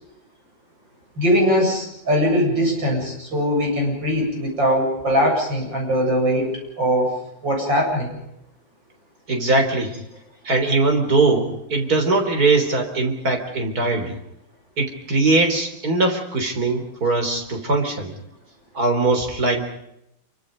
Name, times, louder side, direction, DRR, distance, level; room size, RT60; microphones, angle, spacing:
voice 1, 1.2-7.2 7.4-8.2, equal, 75° right, 0 dB, 8.7 m, -21 dB
voice 2, 9.3-9.9 10.4-14.1 14.8-18.1 18.7-19.6, right 3 dB, 50° right, 4 dB, 4.2 m, -20 dB
28.0 x 24.5 x 5.3 m, 0.82 s
omnidirectional pair, 2.0 m